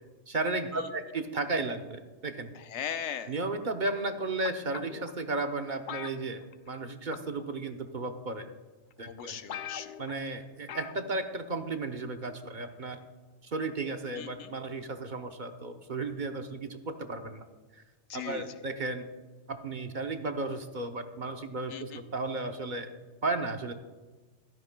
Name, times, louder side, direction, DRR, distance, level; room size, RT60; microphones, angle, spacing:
voice 1, 0.3-2.5 3.3-8.5 9.0-9.4 10.0-13.0 13.4-17.4 18.1-19.0 19.5-22.9 23.2-23.7, right 3 dB, 45° right, 6 dB, 0.9 m, -34 dB
voice 2, 2.5-3.3 9.0-9.9 14.2-14.5 18.1-18.4 21.7-22.0, left 8 dB, 85° left, 10 dB, 1.0 m, -38 dB
sound 1, 4.4-5.1 5.9-6.8 7.1-7.4 8.3-8.4 8.9-9.0 9.2-9.3 9.5-10.2 10.7-11.0 11.3-11.4, left 9 dB, 55° left, 0.6 m, -41 dB
15.0 x 13.5 x 2.3 m, 1.3 s
omnidirectional pair, 1.2 m